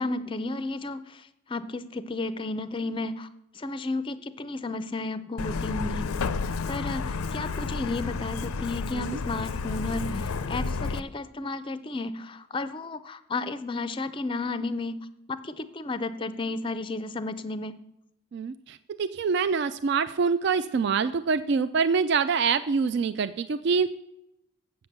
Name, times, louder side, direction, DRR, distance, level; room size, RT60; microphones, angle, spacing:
voice 1, 0.0-3.3 3.5-6.1 6.7-17.7, left 2 dB, 25° left, 13 dB, 0.4 m, -33 dB
Truck, 5.4-11.0, left 4 dB, 90° left, 0.5 m, -31 dB
voice 2, 18.3-24.0, right 5 dB, 55° right, 12 dB, 0.3 m, -25 dB
7.9 x 7.6 x 6.5 m, 0.86 s
head